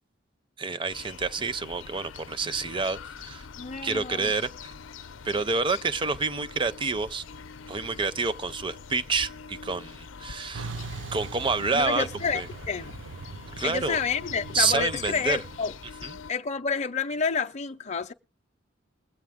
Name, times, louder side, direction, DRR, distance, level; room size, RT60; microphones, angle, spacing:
voice 1, 0.6-3.5 3.8-4.5 5.2-7.2 7.7-10.7 11.1-12.1 12.3-12.5 13.6-14.0 14.5-15.4 16.0-16.2, right 4 dB, 25° right, 0.5 m, -28 dB
sound 1, 0.9-16.3, left 6 dB, 85° left, 0.6 m, -44 dB
voice 2, 3.6-4.3 11.7-12.9 13.6-15.7 16.3-18.1, left 5 dB, 35° left, 0.5 m, -29 dB
Truck, 10.5-15.6, right 4 dB, 75° right, 0.7 m, -41 dB
21.5 x 8.2 x 3.5 m
head